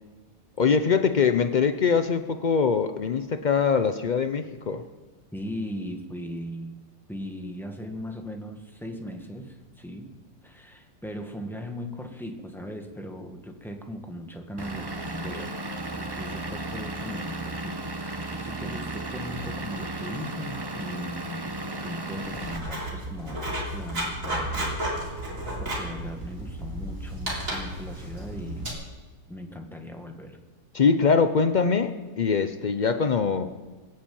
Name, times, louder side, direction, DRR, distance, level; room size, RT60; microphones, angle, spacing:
voice 1, 0.6-4.8 30.7-33.5, left 5 dB, 75° left, 9 dB, 0.4 m, -23 dB
voice 2, 5.3-6.8 7.1-10.1 10.4-15.5 15.9-21.5 21.8-28.8 29.3-30.4, equal, ahead, 3 dB, 1.5 m, -38 dB
Vehicle / Engine, 14.6-22.6, right 2 dB, 25° right, 0.6 m, -34 dB
Writing, 22.2-28.7, right 1 dB, 50° right, 4.1 m, -33 dB
21.5 x 7.5 x 8.6 m, 1.3 s
omnidirectional pair, 1.8 m